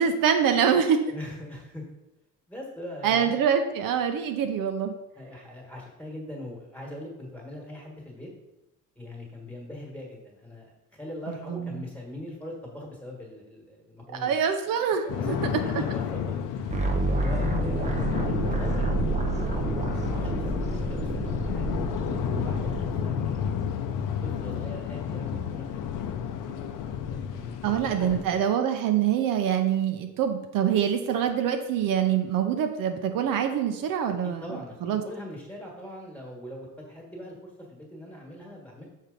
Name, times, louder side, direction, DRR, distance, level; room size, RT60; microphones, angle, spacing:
voice 1, 0.0-1.0 3.0-4.9 11.3-11.7 14.2-15.4 15.7-15.8 26.6-26.7 27.6-34.4 34.8-35.0, right 8 dB, 75° right, 6 dB, 0.8 m, -25 dB
voice 2, 1.1-1.9 2.5-3.3 5.1-8.3 8.9-10.7 11.0-14.4 15.0-16.8 17.1-19.7 20.1-21.8 22.3-23.5 24.2-26.4 27.1-28.5 34.2-38.8, left 1 dB, 5° left, -2 dB, 1.5 m, -41 dB
sound 1, 15.1-28.2, left 8 dB, 65° left, 0.7 m, -31 dB
sound 2, 16.7-23.5, right 3 dB, 20° right, 0.6 m, -29 dB
6.6 x 4.4 x 5.1 m, 0.92 s
cardioid pair, 180°, 34 cm